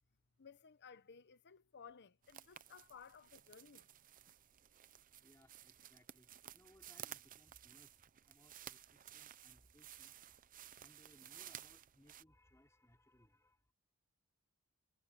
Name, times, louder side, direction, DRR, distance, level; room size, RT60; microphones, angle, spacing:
voice 1, 0.4-3.9, left 6 dB, 50° left, 0.8 m, -58 dB
sound 1, 2.2-12.2, right 11 dB, 40° right, 0.6 m, -56 dB
voice 2, 5.2-10.2 10.8-13.7, left 1 dB, 15° left, 4.0 m, -69 dB
head